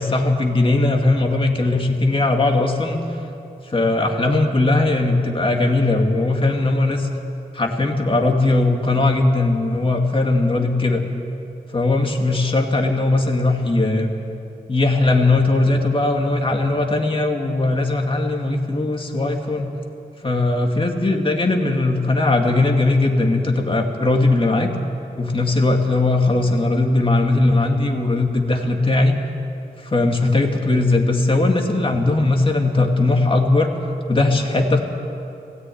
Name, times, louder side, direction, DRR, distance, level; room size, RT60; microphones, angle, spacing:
voice 1, 0.0-3.0 3.7-7.1 7.5-11.0 11.7-14.1 14.7-19.7 20.2-24.7 25.2-29.2 29.8-33.7 34.1-34.8, left 2 dB, 35° left, 2 dB, 2.3 m, -19 dB
17.5 x 16.5 x 9.4 m, 2.7 s
wide cardioid pair, 115°, 16 cm